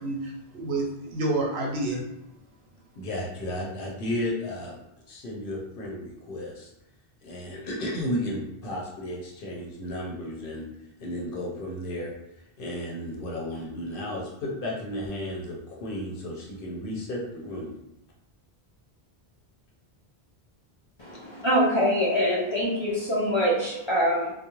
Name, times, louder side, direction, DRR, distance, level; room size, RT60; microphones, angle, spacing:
voice 1, 0.0-2.1, right 2 dB, 80° right, -1 dB, 0.9 m, -29 dB
voice 2, 3.0-4.8 5.1-6.7 7.2-10.6 11.0-12.1 12.6-17.8, left 1 dB, 60° left, -3 dB, 0.8 m, -33 dB
voice 3, 21.0-24.3, equal, 40° left, -7 dB, 0.4 m, -24 dB
2.4 x 2.1 x 2.9 m, 0.88 s
omnidirectional pair, 1.1 m